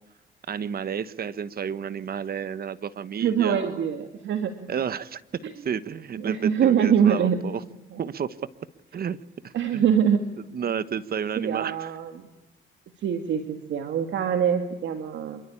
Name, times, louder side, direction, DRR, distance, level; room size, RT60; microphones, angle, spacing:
voice 1, 0.5-3.8 4.7-7.6 8.0-8.4 8.9-9.2 9.4-9.8 10.5-11.9, right 7 dB, 50° right, 15 dB, 1.3 m, -31 dB
voice 2, 3.2-4.7 6.2-7.4 7.9-8.0 9.5-10.2 11.4-12.2 13.0-15.4, right 8 dB, 70° right, 7 dB, 2.1 m, -24 dB
27.0 x 23.5 x 8.7 m, 0.97 s
cardioid pair, 90°, 20 cm